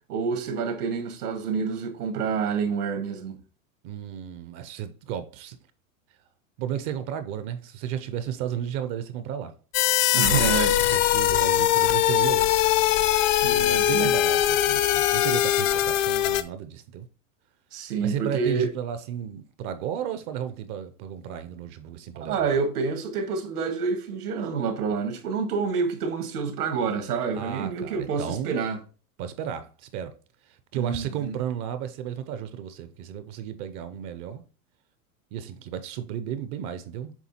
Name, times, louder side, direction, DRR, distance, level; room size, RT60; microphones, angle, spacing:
voice 1, 0.1-3.4 10.1-10.8 13.4-14.1 17.7-18.7 22.2-28.8 30.7-31.4, right 5 dB, 90° right, 2.0 m, -28 dB
voice 2, 3.8-5.6 6.6-9.5 10.9-12.7 13.4-17.1 18.0-22.6 27.3-28.6 29.2-30.1 30.7-34.4 35.3-37.1, right 9 dB, 30° right, 0.4 m, -33 dB
sound 1, 9.7-16.4, left 13 dB, 60° left, 0.7 m, -21 dB
7.3 x 3.4 x 4.2 m
supercardioid pair, 140°, 44 cm